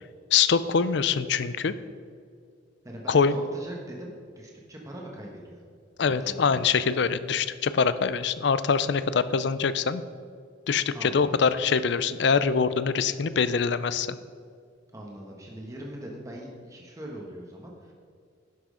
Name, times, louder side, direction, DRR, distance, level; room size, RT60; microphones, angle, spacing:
voice 1, 0.3-1.7 3.1-3.4 6.0-10.0 10.7-14.1, left 5 dB, 60° left, 14 dB, 0.5 m, -24 dB
voice 2, 2.8-5.7 6.0-6.7 10.9-11.5 14.9-17.9, right 1 dB, 15° right, -2 dB, 1.2 m, -41 dB
11.0 x 6.2 x 5.0 m, 2.2 s
head